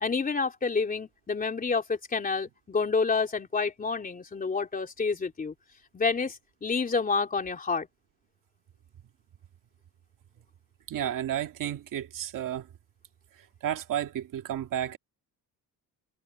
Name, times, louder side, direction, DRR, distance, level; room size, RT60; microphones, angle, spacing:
voice 1, 0.0-5.5 5.9-7.9, left 4 dB, 25° left, 3.5 m, -28 dB
voice 2, 10.9-12.7 13.6-15.0, right 10 dB, 55° right, 2.2 m, -32 dB
cardioid pair, 180°, 37 cm